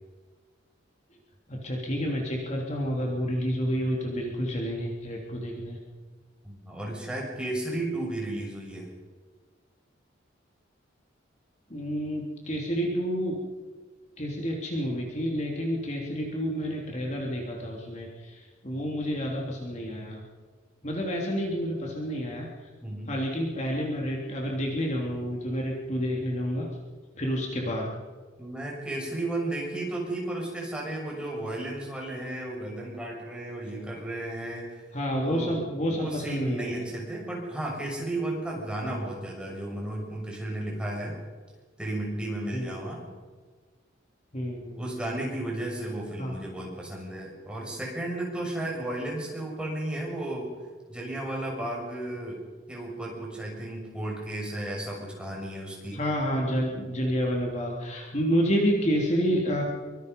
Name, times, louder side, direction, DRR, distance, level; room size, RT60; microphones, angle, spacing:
voice 1, 1.5-5.8 11.7-13.4 14.2-20.2 20.8-22.5 23.1-26.7 27.2-27.9 34.9-36.8 38.8-39.0 42.5-42.8 44.3-44.8 46.2-46.3 55.9-59.6, equal, 35° left, -1 dB, 3.3 m, -29 dB
voice 2, 6.4-8.9 22.8-23.1 28.4-34.8 35.2-35.6 35.8-41.1 41.8-43.0 44.8-50.5 50.9-52.4 52.7-56.0, right 1 dB, 5° right, -2 dB, 6.5 m, -34 dB
24.5 x 24.0 x 5.5 m, 1.4 s
head